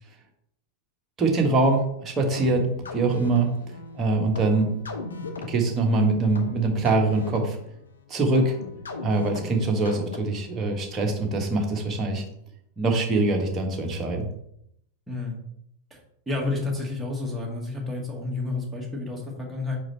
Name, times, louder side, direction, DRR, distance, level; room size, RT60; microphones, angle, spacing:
voice 1, 1.2-3.5 3.9-4.7 5.5-7.6 8.1-8.6 9.0-12.2 12.8-14.3, right 2 dB, 25° right, 1 dB, 1.4 m, -23 dB
sound 1, 2.4-10.6, left 3 dB, 70° left, 0.8 m, -38 dB
voice 2, 15.1-15.4 15.9-16.0 16.3-19.8, left 3 dB, 5° right, -4 dB, 1.9 m, -30 dB
5.4 x 4.8 x 4.1 m, 0.73 s
figure-of-eight pair, 90°, 0 cm